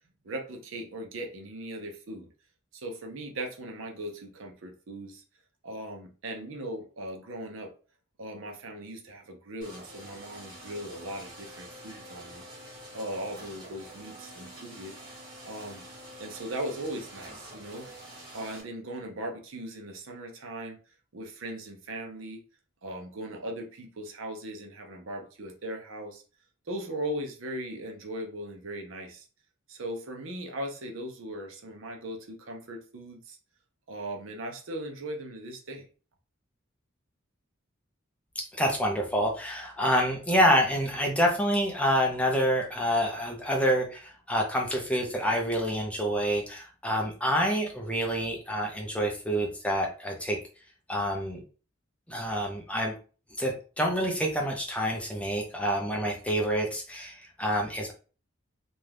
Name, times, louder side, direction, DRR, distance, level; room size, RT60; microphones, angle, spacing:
voice 1, 0.2-2.3 2.7-5.2 5.6-7.7 8.2-12.4 12.9-14.9 15.4-15.8 16.2-17.9 18.3-20.8 21.1-22.4 22.8-26.2 26.7-29.3 29.7-33.4 33.9-35.9, right 1 dB, 70° right, 3 dB, 0.6 m, -38 dB
sound 1, 9.6-18.6, right 1 dB, 25° right, 1.2 m, -47 dB
voice 2, 38.5-50.4 50.9-51.4 52.1-52.9 53.4-57.9, equal, 5° left, 1 dB, 0.5 m, -27 dB
2.6 x 2.3 x 3.3 m, 0.37 s
head